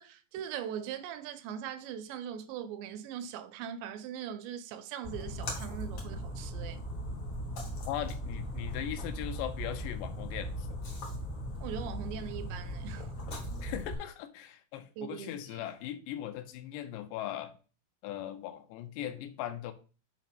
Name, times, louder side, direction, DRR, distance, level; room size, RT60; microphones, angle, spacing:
voice 1, 0.0-6.8 11.6-13.1 15.0-15.7, right 9 dB, 90° right, 3.0 m, -41 dB
Splash splatter, 5.0-13.9, equal, 50° left, 2.0 m, -38 dB
voice 2, 7.9-10.7 13.6-17.5 18.0-19.7, left 12 dB, 85° left, 3.0 m, -39 dB
7.2 x 3.0 x 5.9 m
omnidirectional pair, 4.9 m